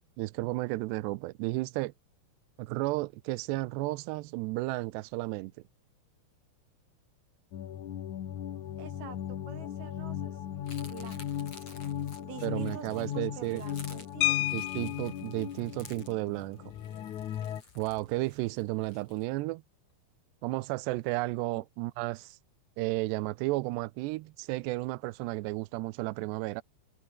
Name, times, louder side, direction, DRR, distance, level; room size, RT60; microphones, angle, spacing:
voice 1, 0.0-1.9 2.6-5.5 12.4-13.6 14.5-16.6 17.8-19.6 20.4-22.4 22.8-26.6, right 21 dB, 80° right, 2.5 m, -33 dB
sound 1, 7.5-17.6, left 10 dB, 55° left, 2.3 m, -37 dB
voice 2, 8.8-10.4 10.9-11.5 12.2-14.4 21.5-21.6, right 8 dB, 55° right, 5.0 m, -47 dB
sound 2, 10.6-19.3, left 3 dB, 30° left, 7.4 m, -53 dB
sound 3, 14.2-15.3 16.7-16.9 17.2-17.4 17.8-18.1, left 22 dB, 85° left, 3.0 m, -31 dB
omnidirectional pair, 5.6 m